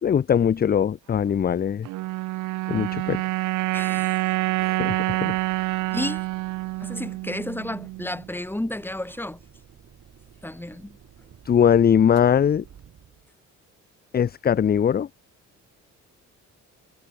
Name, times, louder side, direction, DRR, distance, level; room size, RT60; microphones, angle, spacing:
voice 1, 0.0-1.9 2.7-3.2 4.6-5.4 11.5-12.6 14.1-15.1, left 8 dB, 30° left, 0.5 m, -21 dB
sound 1, 1.8-8.3, right 20 dB, 90° right, 0.5 m, -27 dB
voice 2, 3.7-4.2 5.9-6.3 6.8-9.4 10.4-11.0, left 1 dB, 5° left, 2.5 m, -32 dB
sound 2, 5.3-13.3, right 9 dB, 60° right, 7.1 m, -52 dB
cardioid pair, 90°, 30 cm